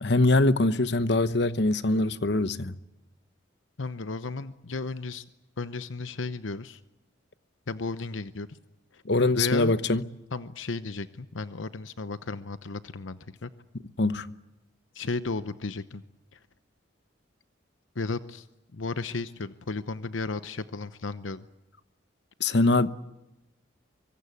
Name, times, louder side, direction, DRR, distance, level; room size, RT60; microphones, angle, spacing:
voice 1, 0.0-2.7 9.0-10.0 14.0-14.3 22.4-22.9, left 2 dB, 60° left, 1.0 m, -23 dB
voice 2, 3.8-5.2 5.6-6.8 7.7-8.6 8.9-9.0 9.3-9.7 10.3-13.5 14.9-16.0 16.3-16.4 17.9-18.5 18.7-21.5, left 3 dB, 90° left, 0.9 m, -34 dB
24.5 x 23.5 x 8.5 m
head